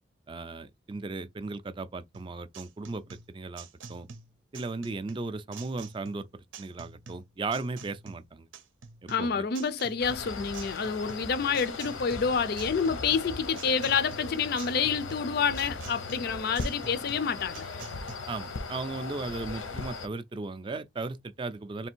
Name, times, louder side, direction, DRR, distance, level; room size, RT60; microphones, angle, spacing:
voice 1, 0.3-4.1 4.5-8.5 9.0-9.4 18.3-21.9, right 3 dB, 25° right, 0.3 m, -36 dB
sound 1, 2.1-18.2, right 5 dB, 75° right, 0.6 m, -48 dB
voice 2, 9.1-17.7, left 6 dB, 50° left, 0.4 m, -28 dB
sound 2, 10.0-20.1, left 4 dB, 90° left, 0.8 m, -38 dB
3.3 x 2.6 x 4.4 m
head